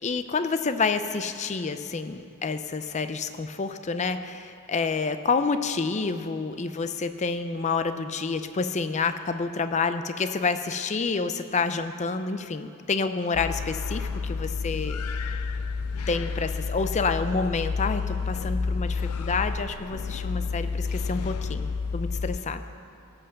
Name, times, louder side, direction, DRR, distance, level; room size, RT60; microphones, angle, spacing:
voice 1, 0.0-15.0 16.1-22.6, left 4 dB, 30° left, 10 dB, 0.5 m, -28 dB
sound 1, 13.3-22.4, left 4 dB, 90° left, 0.5 m, -30 dB
17.5 x 5.8 x 6.7 m, 2.4 s
head